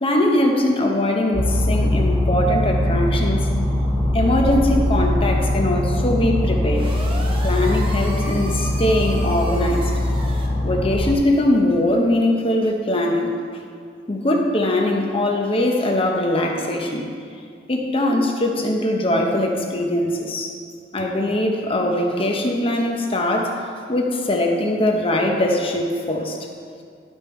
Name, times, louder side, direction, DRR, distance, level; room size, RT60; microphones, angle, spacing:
voice 1, 0.0-3.5 4.1-6.9 7.4-9.9 10.6-13.3 14.1-17.1 17.7-20.5 20.9-26.4, left 1 dB, 30° left, 1 dB, 0.9 m, -21 dB
sound 1, 1.3-11.1, left 1 dB, 5° left, 1.7 m, -21 dB
sound 2, 6.7-10.5, right 1 dB, 30° right, 1.1 m, -35 dB
11.0 x 5.4 x 4.4 m, 2.3 s
head